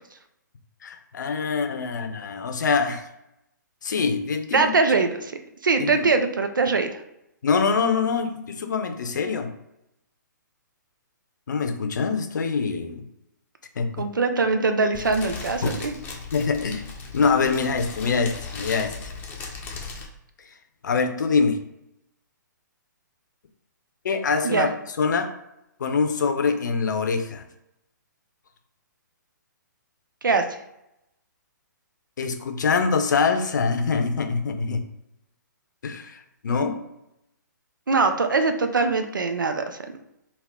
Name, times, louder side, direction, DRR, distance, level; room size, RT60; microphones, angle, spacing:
voice 1, 0.8-3.1 3.8-4.7 5.8-6.1 7.4-9.5 11.5-13.0 13.8-14.0 15.6-15.7 16.3-16.8 17.1-18.9 20.8-21.6 24.0-25.3 25.8-27.4 32.2-34.8 35.8-36.8, left 5 dB, 70° left, 6 dB, 0.6 m, -24 dB
voice 2, 4.5-5.3 5.6-7.0 14.0-16.0 24.4-24.7 30.2-30.4 37.9-40.0, right 4 dB, 85° right, 7 dB, 0.5 m, -22 dB
Fire, 14.9-20.1, left 4 dB, 15° left, 0.6 m, -37 dB
3.5 x 2.4 x 3.5 m, 0.85 s
figure-of-eight pair, 130°, 11 cm